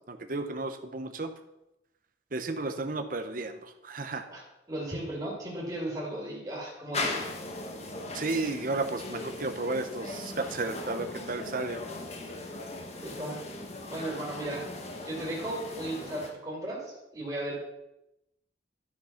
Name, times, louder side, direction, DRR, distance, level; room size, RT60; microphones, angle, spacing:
voice 1, 0.1-1.3 2.3-4.3 8.1-11.8, right 3 dB, 45° right, 7 dB, 0.7 m, -33 dB
voice 2, 4.7-7.3 13.0-13.4 13.9-14.7 15.0-17.6, right 1 dB, 20° right, -5 dB, 2.6 m, -35 dB
sound 1, 6.9-16.3, left 2 dB, 35° left, 1.2 m, -38 dB
11.5 x 6.1 x 5.7 m, 0.90 s
head